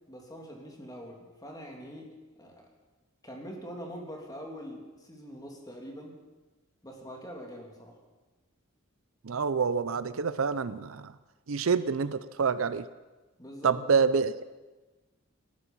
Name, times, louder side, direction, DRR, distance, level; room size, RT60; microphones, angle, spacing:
voice 1, 0.1-2.1 2.4-2.6 3.2-6.2 6.8-8.0 13.4-13.7, equal, 20° left, 0 dB, 2.8 m, -44 dB
voice 2, 9.2-11.1 11.5-12.9 13.6-14.4, right 5 dB, 75° right, 15 dB, 0.6 m, -27 dB
19.0 x 13.0 x 5.5 m, 1.2 s
head